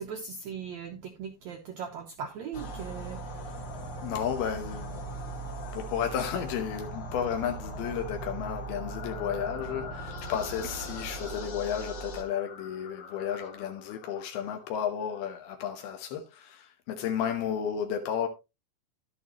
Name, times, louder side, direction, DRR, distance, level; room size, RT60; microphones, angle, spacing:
voice 1, 0.0-3.2, right 7 dB, 80° right, 1.6 m, -39 dB
sound 1, 2.5-12.2, right 2 dB, 50° left, 1.5 m, -39 dB
sound 2, 3.1-15.6, left 6 dB, 65° left, 2.2 m, -48 dB
voice 2, 4.0-5.0 5.7-18.3, left 8 dB, 85° left, 3.0 m, -33 dB
11.0 x 8.7 x 3.0 m
omnidirectional pair, 4.3 m